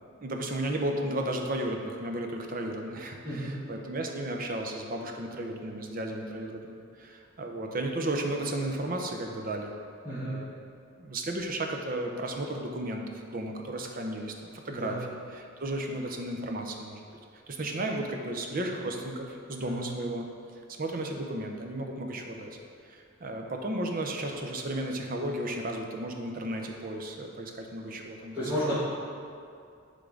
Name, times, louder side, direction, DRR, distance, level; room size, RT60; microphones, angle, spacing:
voice 1, 0.2-9.7 10.2-10.6 11.0-15.1 15.3-17.0 17.5-20.3 20.7-22.6 22.8-28.4 28.7-28.8, right 1 dB, 45° right, 2 dB, 0.6 m, -34 dB
voice 2, 3.2-3.6 10.0-10.4 14.7-15.1 19.6-20.0 28.3-28.8, equal, 25° right, -13 dB, 1.4 m, -32 dB
9.9 x 3.8 x 3.8 m, 2.4 s
head